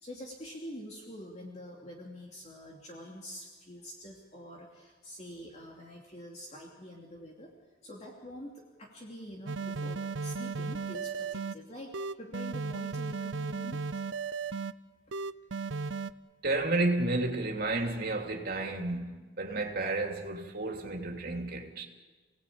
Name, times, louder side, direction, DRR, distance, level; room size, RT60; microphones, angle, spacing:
voice 1, 0.0-7.5 7.8-13.8, equal, 35° left, 2.9 m, -46 dB
sound 1, 9.5-11.5 11.9-14.7 15.1-16.1, right 4 dB, 70° right, 0.7 m, -35 dB
voice 2, 16.4-21.8, right 2 dB, 50° right, 3.1 m, -31 dB
28.5 x 18.5 x 8.7 m
head